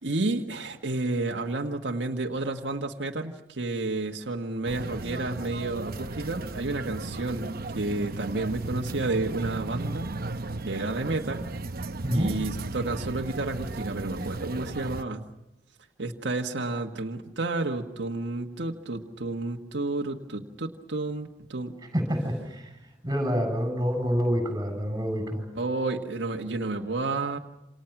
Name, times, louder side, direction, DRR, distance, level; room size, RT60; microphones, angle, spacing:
voice 1, 0.0-7.5 7.7-10.1 10.6-11.5 12.1-15.2 16.0-21.7 25.5-27.4, right 2 dB, 90° right, 2 dB, 1.6 m, -31 dB
sound 1, 4.6-15.0, right 2 dB, 55° right, 0.9 m, -35 dB
voice 2, 21.9-22.7 23.0-25.4, equal, 20° right, 5 dB, 7.7 m, -27 dB
28.0 x 27.5 x 6.0 m, 0.88 s
head